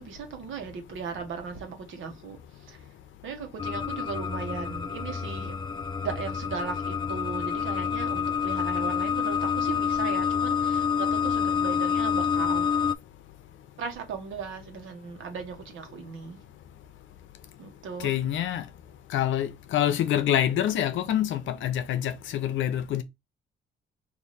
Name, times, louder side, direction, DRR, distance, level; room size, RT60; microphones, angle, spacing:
voice 1, 0.0-2.4 2.6-2.8 3.2-5.6 6.0-12.7 13.8-16.4 17.6-18.1, right 6 dB, 75° right, 1.2 m, -37 dB
sound 1, 3.6-13.0, left 7 dB, 25° left, 0.4 m, -28 dB
voice 2, 18.0-18.7 19.1-23.0, left 11 dB, 75° left, 0.6 m, -26 dB
3.2 x 2.7 x 4.1 m
cardioid pair, 90°, 20 cm